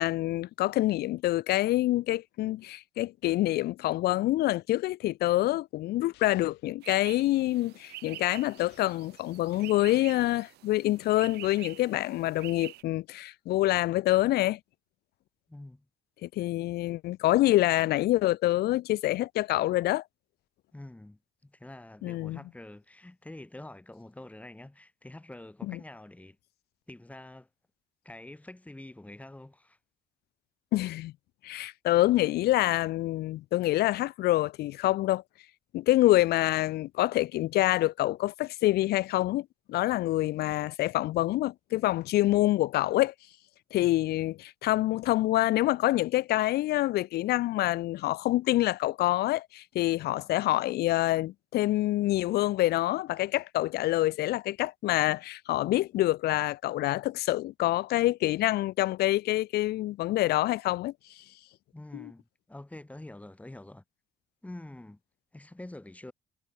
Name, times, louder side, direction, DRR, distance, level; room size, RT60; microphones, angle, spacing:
voice 1, 0.0-14.6 16.2-20.0 22.0-22.4 25.7-25.8 30.7-31.1 31.4-35.2 35.7-43.1 43.7-60.9 61.9-62.1, left 16 dB, 70° left, 0.7 m, -26 dB
sound 1, 6.1-6.7 8.6-9.2, left 20 dB, 90° left, 6.6 m, -58 dB
sound 2, 6.8-12.8, right 16 dB, 75° right, 1.5 m, -47 dB
voice 2, 15.5-15.9 20.7-26.4 26.9-27.5 28.0-29.8 61.7-63.8 64.4-65.0 65.3-66.1, left 1 dB, 10° left, 3.9 m, -46 dB
cardioid pair, 110°, 17 cm